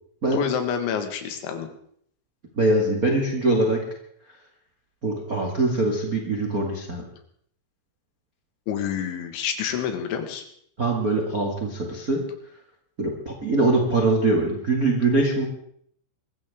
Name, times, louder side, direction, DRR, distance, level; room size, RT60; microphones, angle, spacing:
voice 1, 0.3-1.7 8.7-10.4, left 8 dB, 75° left, 6 dB, 3.9 m, -28 dB
voice 2, 2.5-3.8 5.0-7.0 10.8-12.2 13.0-15.5, right 2 dB, 45° right, 0 dB, 1.1 m, -23 dB
24.0 x 14.0 x 3.7 m, 0.65 s
omnidirectional pair, 5.5 m